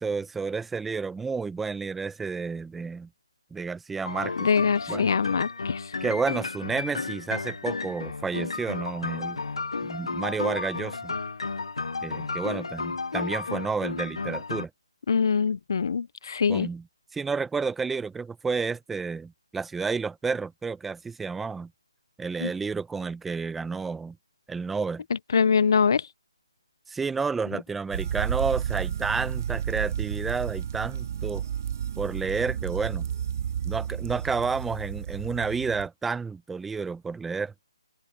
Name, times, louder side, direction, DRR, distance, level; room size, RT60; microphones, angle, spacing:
voice 1, 0.0-3.1 3.5-4.5 4.9-5.1 6.0-9.4 9.8-11.1 12.0-14.7 16.5-16.8 17.1-21.7 22.2-24.2 24.5-25.0 26.9-31.4 32.0-33.1 33.6-37.5, right 4 dB, 5° right, 0.8 m, -30 dB
sound 1, 4.0-14.6, left 4 dB, 85° left, 0.6 m, -33 dB
voice 2, 4.4-5.9 15.1-16.7 22.4-22.5 25.1-26.1, left 6 dB, 50° left, 0.3 m, -24 dB
sound 2, 27.9-35.9, right 9 dB, 35° right, 1.4 m, -31 dB
open air
hypercardioid pair, 170°, 3 cm